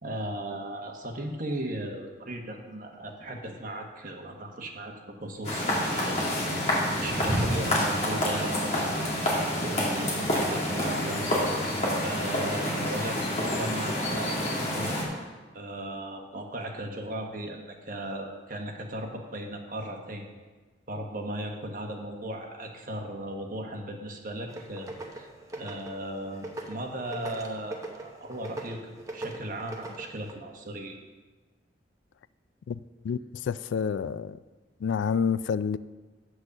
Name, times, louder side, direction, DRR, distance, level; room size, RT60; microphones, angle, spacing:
voice 1, 0.0-4.9 5.2-6.3 7.0-11.2 12.0-15.3 15.5-20.2 20.9-24.9 25.1-31.0, right 1 dB, 45° right, 1.2 m, -37 dB
sound 1, 5.4-15.0, left 1 dB, 35° left, 2.3 m, -28 dB
sound 2, 24.5-30.3, right 1 dB, 15° right, 0.8 m, -41 dB
voice 2, 33.0-34.4 34.8-35.8, left 6 dB, 75° left, 0.3 m, -28 dB
8.4 x 6.3 x 6.5 m
head